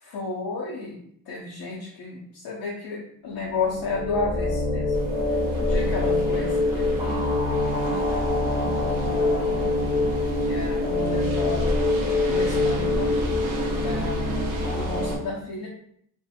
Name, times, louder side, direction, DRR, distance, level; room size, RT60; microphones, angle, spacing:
voice 1, 0.1-1.0 1.3-4.9 5.6-7.3 7.8-9.6 10.4-11.7 12.3-13.2 13.8-15.7, left 4 dB, 80° left, -3 dB, 0.7 m, -33 dB
sound 1, 3.6-15.2, left 2 dB, 10° right, 1.0 m, -25 dB
sound 2, 4.9-15.2, right 1 dB, 65° right, 0.7 m, -33 dB
2.7 x 2.6 x 2.4 m, 0.66 s
cardioid pair, 90°, 36 cm